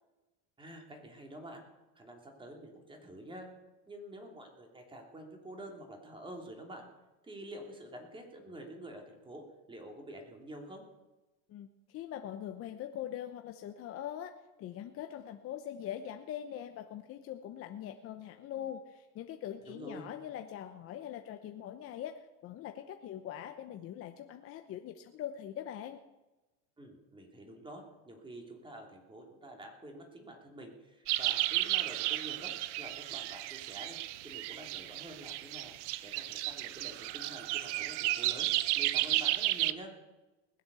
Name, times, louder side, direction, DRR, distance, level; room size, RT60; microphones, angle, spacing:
voice 1, 0.6-1.7 1.9-3.5 3.9-6.9 7.2-10.8 19.7-20.1 26.8-34.0 34.2-35.7 36.0-39.9, right 1 dB, 15° right, 2 dB, 3.0 m, -48 dB
voice 2, 11.5-14.3 14.6-26.0, left 10 dB, 40° left, 6 dB, 0.9 m, -42 dB
sound 1, 31.1-39.7, right 16 dB, 75° right, 0.8 m, -33 dB
20.0 x 8.0 x 6.9 m, 1.1 s
supercardioid pair, 130°, 36 cm